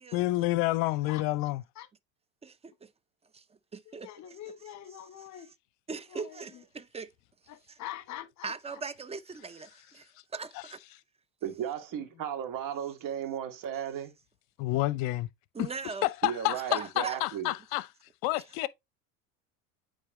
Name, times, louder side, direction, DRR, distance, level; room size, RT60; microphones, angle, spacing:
voice 1, 0.1-1.6 14.6-15.3 15.6-15.7 16.0-17.9 18.2-18.7, left 18 dB, 60° left, 0.7 m, -29 dB
voice 2, 2.4-2.9 3.3-3.4 3.7-4.1 5.9-7.1 7.7-7.8 8.4-10.8 15.5-16.1 16.7-17.2, right 4 dB, 15° right, 0.6 m, -39 dB
voice 3, 3.8-5.5 6.1-6.6 7.5-8.8 11.9-12.1, left 12 dB, 45° left, 1.2 m, -44 dB
voice 4, 11.4-14.1 16.2-17.5, right 9 dB, 50° right, 2.1 m, -35 dB
8.8 x 3.7 x 3.1 m
supercardioid pair, 100°, 40 cm